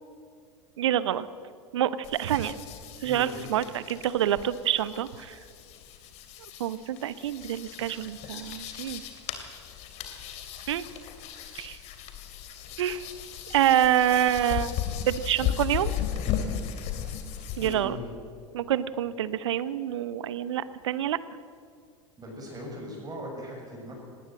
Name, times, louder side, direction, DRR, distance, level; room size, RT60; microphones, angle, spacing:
voice 1, 0.8-1.3 1.7-2.5 3.0-5.4 6.6-9.0 10.7-10.9 11.6-11.8 12.8-13.1 13.5-14.7 15.1-15.9 17.6-18.0 18.5-21.2, right 11 dB, 65° right, 16 dB, 0.9 m, -27 dB
sound 1, 2.0-17.7, left 10 dB, 45° left, 2.6 m, -36 dB
voice 2, 3.0-3.5 17.6-18.1 22.2-24.0, equal, 25° right, -1 dB, 6.6 m, -39 dB
19.0 x 19.0 x 7.7 m, 2.2 s
figure-of-eight pair, 80°, 16 cm